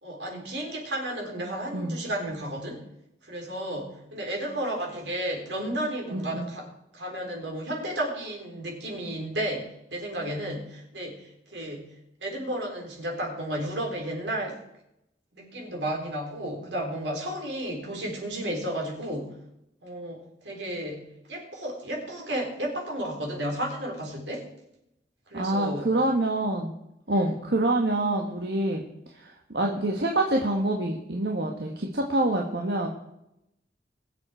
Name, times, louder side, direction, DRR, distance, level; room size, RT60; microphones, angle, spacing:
voice 1, 0.0-2.8 3.2-6.7 6.9-11.9 12.2-14.6 15.4-19.4 19.8-24.5 25.3-25.9 27.1-27.4, right 1 dB, 85° right, 1 dB, 3.9 m, -33 dB
voice 2, 6.1-6.5 25.3-26.7 27.1-28.8 29.2-32.9, right 1 dB, 65° right, 1 dB, 1.4 m, -26 dB
21.5 x 7.6 x 4.4 m, 0.83 s
head